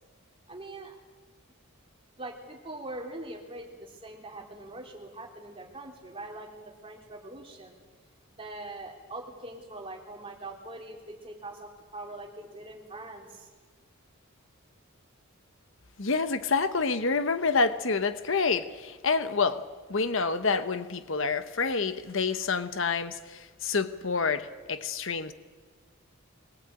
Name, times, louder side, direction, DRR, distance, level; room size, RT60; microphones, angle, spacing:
voice 1, 0.5-1.0 2.1-7.8 8.3-13.5, right 2 dB, 25° right, 0 dB, 3.6 m, -42 dB
voice 2, 16.0-19.6 19.9-25.3, left 4 dB, 60° left, 11 dB, 1.0 m, -28 dB
23.0 x 20.0 x 8.9 m, 1.4 s
head